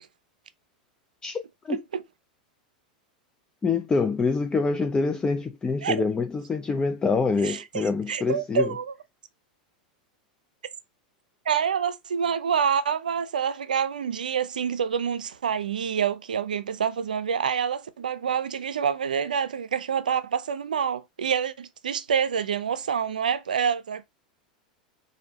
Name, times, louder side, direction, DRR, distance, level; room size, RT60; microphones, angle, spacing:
voice 1, 1.2-1.8 3.6-8.7, left 4 dB, 20° left, 0.4 m, -26 dB
voice 2, 7.4-8.9 11.5-24.0, right 7 dB, 80° right, 0.5 m, -27 dB
3.3 x 2.6 x 3.9 m
hypercardioid pair, 95°, 4 cm